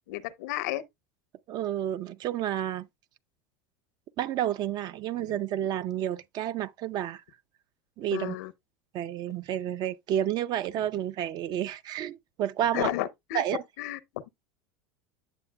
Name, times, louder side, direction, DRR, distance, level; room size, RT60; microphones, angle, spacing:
voice 1, 0.1-0.8 5.2-5.4 8.1-8.5 12.7-13.4 13.8-14.0, left 15 dB, 70° left, 0.7 m, -32 dB
voice 2, 1.5-2.9 4.2-7.2 8.0-8.4 8.9-12.9 13.3-13.6, right 11 dB, 50° right, 0.5 m, -30 dB
9.1 x 7.0 x 2.2 m
hypercardioid pair, 85°, 9 cm